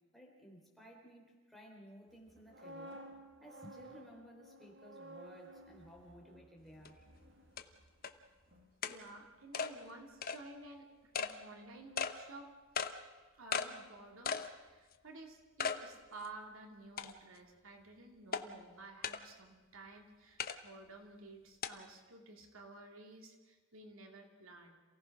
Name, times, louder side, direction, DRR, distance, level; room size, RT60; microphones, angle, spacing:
voice 1, 0.1-3.0 3.4-7.1, equal, ahead, -1 dB, 4.0 m, -56 dB
sound 1, 2.3-8.2 8.5-8.7, right 1 dB, 60° right, 1.8 m, -54 dB
sound 2, 6.9-7.0 7.6-7.7 8.0-8.1 8.8-9.0 9.5-9.7 10.2-10.4 11.1-11.3 12.0-12.1 12.8-12.9 13.5-13.7 14.3-14.5 14.9-15.0 15.6-15.8 16.2-16.3 17.0-17.4 18.3-18.4 19.0-19.2 20.4-20.6 21.6-21.7, left 6 dB, 45° left, 1.0 m, -36 dB
voice 2, 8.9-12.5 13.3-24.7, right 2 dB, 85° right, 3 dB, 2.7 m, -53 dB
27.5 x 17.0 x 6.1 m, 1.3 s
head